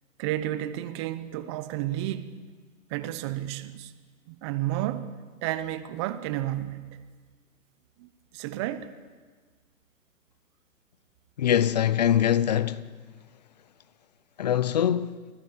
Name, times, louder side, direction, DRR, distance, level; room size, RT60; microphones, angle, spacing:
voice 1, 0.2-2.3 2.9-3.9 4.3-5.1 5.4-6.9 8.0-8.1 8.3-8.9, right 13 dB, 20° right, 0.9 m, -31 dB
voice 2, 11.4-12.9 14.4-15.3, left 10 dB, 30° left, 0.6 m, -23 dB
29.0 x 20.0 x 7.3 m
hypercardioid pair, 145°, 44 cm